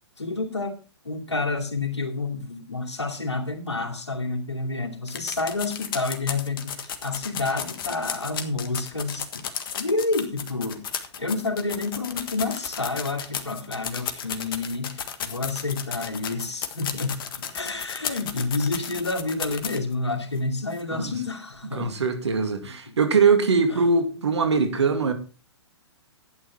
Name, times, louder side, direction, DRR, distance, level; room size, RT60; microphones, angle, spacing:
voice 1, 0.2-0.8 1.0-9.4 9.8-10.9 11.2-21.9 22.6-22.9 23.7-23.8, left 3 dB, 85° left, 2.7 m, -29 dB
sound 1, 5.1-19.9 20.4-20.5 20.7-20.8, left 8 dB, 50° left, 1.6 m, -33 dB
voice 2, 21.7-25.1, right 4 dB, 75° right, 2.3 m, -22 dB
11.5 x 9.1 x 4.4 m
figure-of-eight pair, 120°, 15 cm